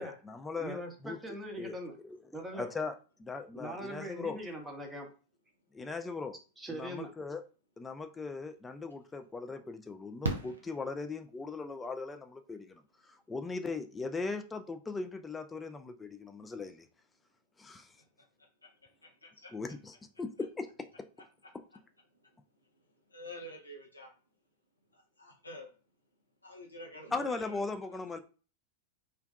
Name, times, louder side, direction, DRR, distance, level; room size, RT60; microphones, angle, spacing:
voice 1, 0.0-1.2 1.6-1.8 2.0-2.2 2.5-2.9 3.2-4.4 5.7-6.4 6.7-7.4 7.8-16.9 17.6-18.0 19.5-20.7 27.1-28.2, left 4 dB, 15° left, 0.3 m, -39 dB
voice 2, 0.6-2.0 2.3-2.7 3.5-5.1 6.6-7.1, equal, 10° right, 0.7 m, -41 dB
Fireworks, 8.6-8.7 10.2-11.6 13.3-13.4 13.6-13.7, right 2 dB, 70° right, 0.4 m, -37 dB
voice 3, 18.4-19.5 22.1-24.1 24.9-25.8 26.4-28.2, left 1 dB, 85° left, 0.6 m, -50 dB
2.5 x 2.2 x 2.3 m
figure-of-eight pair, 90°, 0 cm